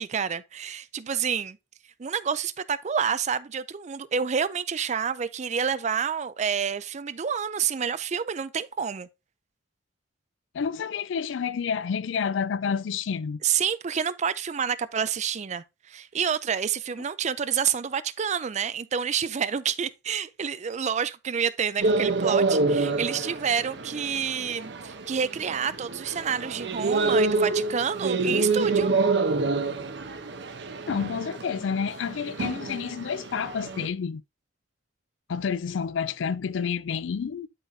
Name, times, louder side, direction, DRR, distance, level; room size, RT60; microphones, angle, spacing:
voice 1, 0.0-1.6 2.0-9.1 13.4-28.9, right 7 dB, 40° right, 0.4 m, -28 dB
voice 2, 10.5-13.4 30.9-34.2 35.3-37.5, left 6 dB, 85° left, 0.4 m, -29 dB
sound 1, 21.8-33.9, right 3 dB, 65° right, 0.8 m, -27 dB
11.5 x 4.0 x 2.7 m
head